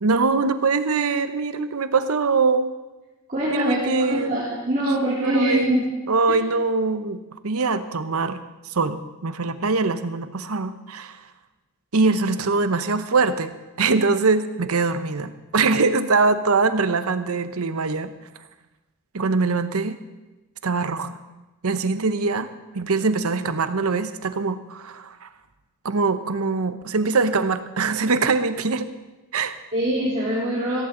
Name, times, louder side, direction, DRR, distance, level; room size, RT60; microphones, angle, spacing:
voice 1, 0.0-2.7 3.5-4.3 5.2-5.7 6.1-8.4 8.6-11.2 11.9-18.1 19.1-20.0 20.6-21.2 21.6-22.5 22.7-25.3 25.8-28.9 29.3-29.6, right 4 dB, 75° right, 11 dB, 0.9 m, -23 dB
voice 2, 3.3-5.8 29.7-30.8, right 1 dB, 35° right, -9 dB, 3.5 m, -23 dB
16.0 x 15.0 x 3.9 m, 1.1 s
head